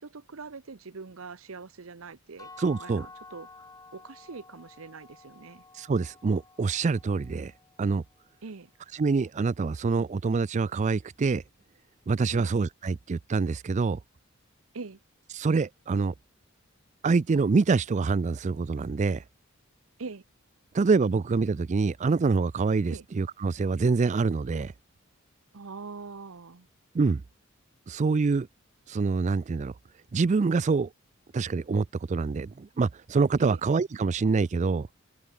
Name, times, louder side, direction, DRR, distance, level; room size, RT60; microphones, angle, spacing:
voice 1, 0.0-3.5 3.9-5.6 8.4-8.7 12.3-12.5 14.7-15.0 20.0-20.2 22.9-23.1 25.5-26.7 33.4-33.6, right 4 dB, 80° right, 0.9 m, -42 dB
sound 1, 2.4-8.2, left 3 dB, 20° left, 3.7 m, -51 dB
voice 2, 2.6-3.1 5.7-7.5 7.8-8.0 8.9-11.4 12.1-14.0 15.3-16.1 17.0-19.2 20.7-24.7 26.9-27.2 27.9-28.5 28.9-29.7 30.1-30.9 31.3-34.9, right 4 dB, 35° right, 0.4 m, -26 dB
head